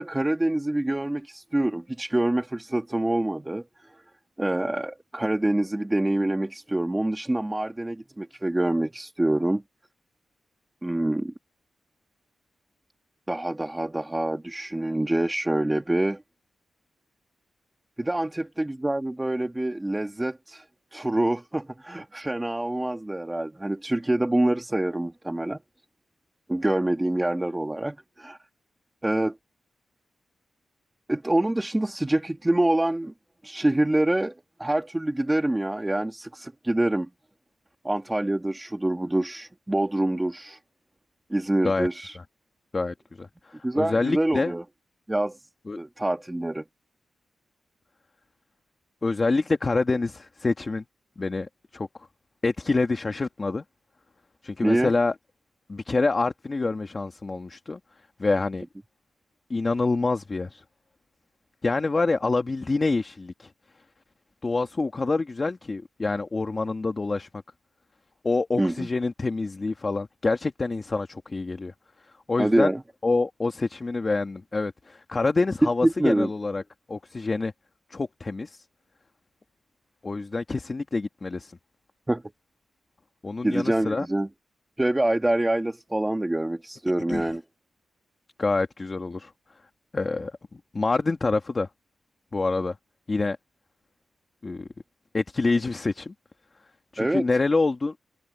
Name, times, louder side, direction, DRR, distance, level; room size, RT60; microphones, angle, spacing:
voice 1, 0.0-3.6 4.4-9.6 10.8-11.3 13.3-16.2 18.0-20.6 20.9-25.6 26.5-28.4 29.0-29.4 31.1-33.1 33.4-34.3 34.6-37.1 37.8-40.6 41.3-42.2 43.6-44.6 45.1-45.4 45.8-46.6 54.6-54.9 68.6-68.9 72.4-72.8 75.8-76.3 82.1-82.2 83.4-84.3 84.8-87.4 97.0-97.2, right 1 dB, 10° right, 1.6 m, -26 dB
voice 2, 42.7-44.5 45.7-45.8 49.0-50.8 51.2-51.9 52.4-53.6 54.4-55.1 55.7-57.8 58.2-58.6 59.5-60.6 61.6-63.5 64.4-67.3 68.2-71.7 72.3-72.7 73.0-76.6 76.9-77.5 77.9-78.6 80.0-81.5 83.2-84.1 87.1-87.3 88.4-89.3 89.9-91.7 92.3-92.7 93.1-93.4 94.4-94.7 95.1-96.1 96.9-97.9, left 3 dB, 30° left, 1.6 m, -26 dB
wide cardioid pair, 125°, 0 cm